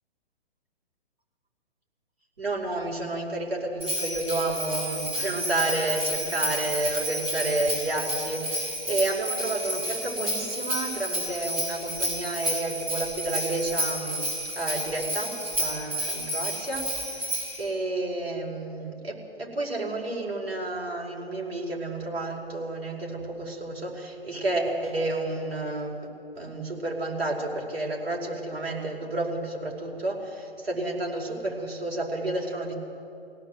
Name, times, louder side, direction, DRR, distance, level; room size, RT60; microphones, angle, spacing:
voice 1, 2.4-26.1 26.3-32.7, right 2 dB, 75° right, -1 dB, 5.1 m, -31 dB
Bell, 3.8-17.6, equal, 20° right, 7.4 m, -31 dB
23.5 x 17.0 x 7.9 m, 2.8 s
figure-of-eight pair, 135°, 31 cm